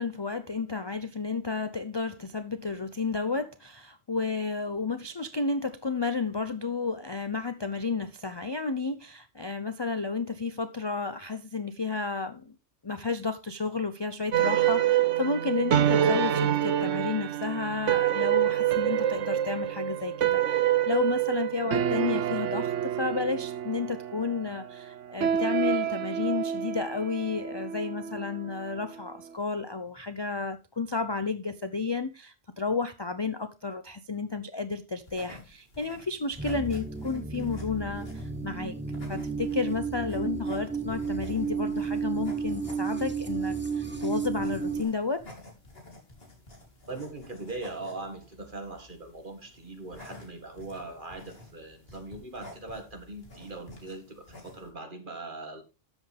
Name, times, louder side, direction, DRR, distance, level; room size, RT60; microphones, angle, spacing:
voice 1, 0.0-12.5 12.8-38.8 39.1-45.2, left 4 dB, 30° left, 0.5 m, -32 dB
sound 1, 14.3-28.8, right 10 dB, 75° right, 1.1 m, -27 dB
sound 2, 35.0-54.7, left 2 dB, 50° left, 3.4 m, -51 dB
sound 3, 36.4-44.8, right 5 dB, 10° right, 1.1 m, -32 dB
voice 2, 46.9-55.6, right 2 dB, 40° right, 2.1 m, -41 dB
13.0 x 8.1 x 3.4 m
omnidirectional pair, 1.3 m